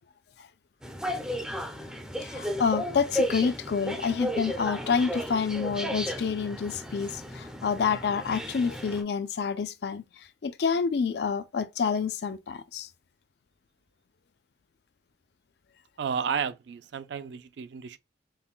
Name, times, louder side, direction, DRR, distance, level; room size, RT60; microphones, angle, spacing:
sound 1, 0.8-9.0, equal, 5° right, 0.5 m, -34 dB
voice 1, 2.2-12.9, left 6 dB, 60° left, 0.4 m, -28 dB
voice 2, 16.0-18.0, right 6 dB, 70° right, 0.4 m, -32 dB
5.5 x 2.2 x 2.2 m
head